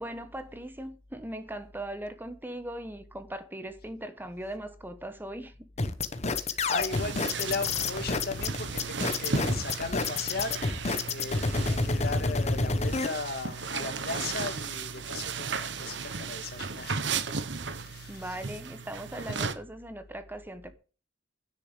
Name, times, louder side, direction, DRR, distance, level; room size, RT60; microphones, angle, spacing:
voice 1, 0.0-5.7 18.1-20.7, right 1 dB, 10° right, 1.0 m, -39 dB
sound 1, 5.8-13.1, left 3 dB, 35° left, 1.0 m, -28 dB
voice 2, 6.2-17.0 17.8-18.4 19.3-19.4, left 3 dB, 55° left, 1.7 m, -37 dB
sound 2, 6.9-19.5, right 5 dB, 65° right, 1.1 m, -35 dB
9.8 x 6.8 x 8.1 m
head